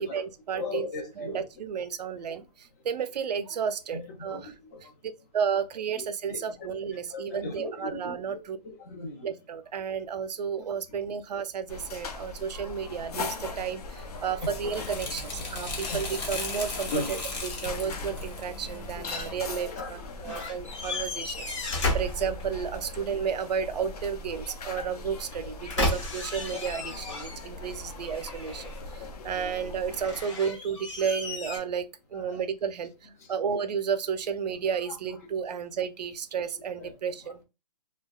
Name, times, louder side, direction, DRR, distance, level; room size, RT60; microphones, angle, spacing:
voice 1, 0.0-0.9 1.2-4.5 5.0-8.6 9.2-37.4, right 7 dB, 80° right, 0.5 m, -32 dB
voice 2, 0.6-1.4 1.8-1.9 3.9-4.8 6.0-6.7 7.1-8.2 8.6-9.3 14.4-14.5 15.9-16.0 16.9-17.2 17.6-17.7 19.7-20.4 25.4-25.5 26.3-26.6 29.3-29.5 32.1-32.4 34.9-35.0 36.8-36.9 37.2-37.4, left 3 dB, 25° left, 0.4 m, -38 dB
sound 1, 11.7-30.2, left 3 dB, 65° left, 0.6 m, -40 dB
sound 2, 14.0-19.5, left 3 dB, 85° left, 1.4 m, -38 dB
sound 3, 20.3-22.9 25.2-27.7 28.0-28.9 29.9-31.6, left 1 dB, 45° left, 1.0 m, -33 dB
2.8 x 2.2 x 2.3 m
hypercardioid pair, 165°, 21 cm